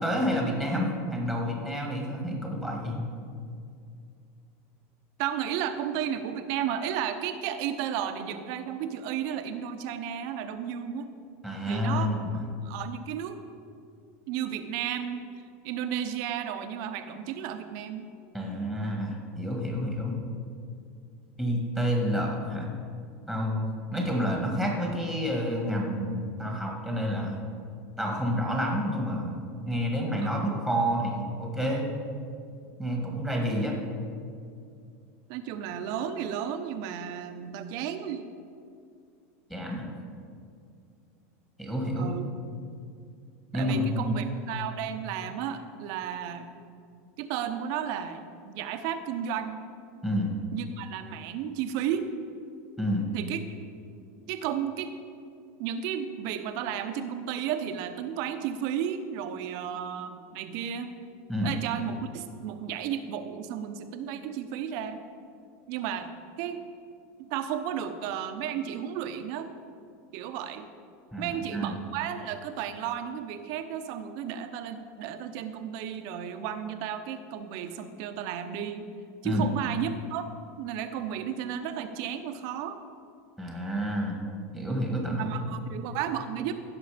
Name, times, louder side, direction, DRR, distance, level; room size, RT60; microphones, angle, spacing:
voice 1, 0.0-3.1 11.4-12.4 18.3-20.2 21.4-22.7 23.3-27.4 28.0-31.9 32.8-33.8 39.5-39.9 41.6-42.1 43.5-44.2 50.0-50.3 52.8-53.1 61.3-61.5 71.1-71.8 79.2-79.5 83.4-84.2 84.5-85.5, equal, 5° left, -1 dB, 1.8 m, -29 dB
voice 2, 5.2-11.1 11.6-12.1 12.6-13.4 14.3-15.2 15.6-18.1 30.2-30.3 35.3-38.3 41.9-42.3 43.5-46.5 47.2-49.6 50.5-52.2 53.1-53.4 54.3-54.9 55.6-60.9 61.4-65.0 65.7-66.1 66.4-66.6 67.2-69.5 70.1-70.7 71.2-78.9 79.2-80.3 80.6-82.8 85.1-86.5, right 9 dB, 55° right, 8 dB, 0.9 m, -33 dB
15.5 x 6.3 x 5.1 m, 2.4 s
supercardioid pair, 145°, 8 cm